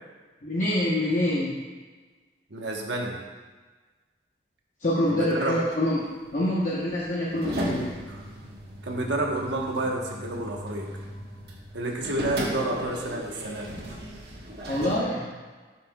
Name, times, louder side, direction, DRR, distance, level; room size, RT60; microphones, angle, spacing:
voice 1, 0.4-1.6 4.8-6.0 6.3-8.0 14.7-15.4, left 1 dB, 45° left, -7 dB, 1.0 m, -26 dB
voice 2, 2.5-3.2 5.1-5.6 8.1-8.2 8.8-10.9 11.7-13.7, right 2 dB, 85° right, 0 dB, 1.2 m, -29 dB
sound 1, 5.7-15.0, equal, 60° right, 1.4 m, -36 dB
12.0 x 6.0 x 2.3 m, 1.4 s
head